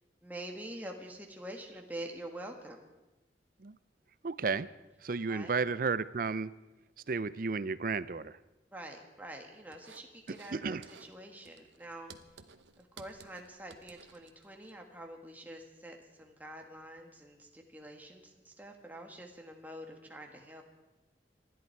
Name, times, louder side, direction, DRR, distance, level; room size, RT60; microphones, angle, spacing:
voice 1, 0.2-2.8 5.3-5.6 8.7-12.1 12.8-20.6, right 1 dB, 10° right, 2 dB, 1.7 m, -46 dB
voice 2, 4.2-4.7 5.0-6.5 7.1-8.3 10.5-10.8, right 4 dB, 50° right, 17 dB, 0.5 m, -32 dB
sound 1, 9.7-10.6 10.8-11.1 11.4-14.7, right 5 dB, 90° right, 1.0 m, -55 dB
26.5 x 11.0 x 4.6 m, 1.0 s
head